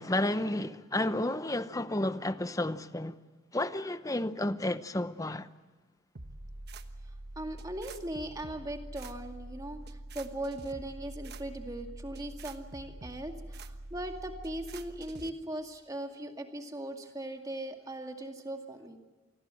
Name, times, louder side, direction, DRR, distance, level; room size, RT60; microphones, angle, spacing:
voice 1, 0.0-3.1 3.5-5.5, left 1 dB, 15° left, 0.7 m, -31 dB
sound 1, 6.2-15.3, right 2 dB, 50° right, 1.3 m, -45 dB
voice 2, 7.4-19.0, right 1 dB, 15° right, 2.2 m, -39 dB
27.5 x 20.5 x 7.7 m
head